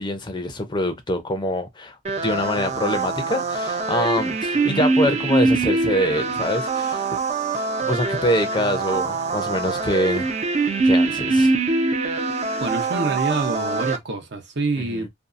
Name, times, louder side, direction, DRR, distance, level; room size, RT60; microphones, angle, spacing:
voice 1, 0.0-2.0 2.2-7.0 7.5-10.3 10.8-11.6 14.8-15.1, left 1 dB, 25° left, 0.5 m, -25 dB
sound 1, 2.0-14.0, right 3 dB, 35° right, 0.5 m, -23 dB
voice 2, 12.6-15.1, right 2 dB, 60° right, 0.8 m, -26 dB
2.6 x 2.3 x 2.4 m
head